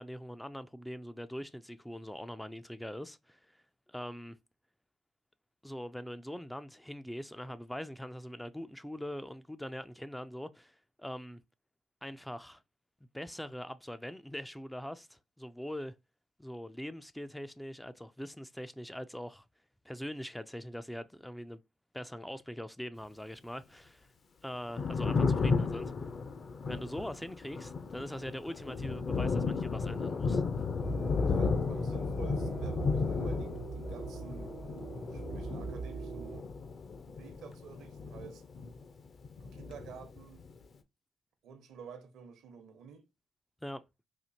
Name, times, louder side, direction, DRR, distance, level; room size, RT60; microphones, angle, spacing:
voice 1, 0.0-3.6 3.9-4.4 5.6-11.4 12.0-12.6 13.1-15.9 16.4-19.5 19.8-21.6 21.9-24.1 24.4-25.9 26.7-30.4 43.6-43.8, equal, 5° left, 0.3 m, -42 dB
Thunder, 24.5-39.0 39.2-40.5, left 4 dB, 45° left, 0.6 m, -34 dB
sound 1, 30.8-36.4, right 5 dB, 50° right, 0.6 m, -42 dB
voice 2, 31.2-34.5 35.1-36.5 37.1-38.4 39.4-40.4 41.4-43.1, right 6 dB, 80° right, 0.9 m, -50 dB
4.3 x 2.5 x 2.7 m
cardioid pair, 90°, 0 cm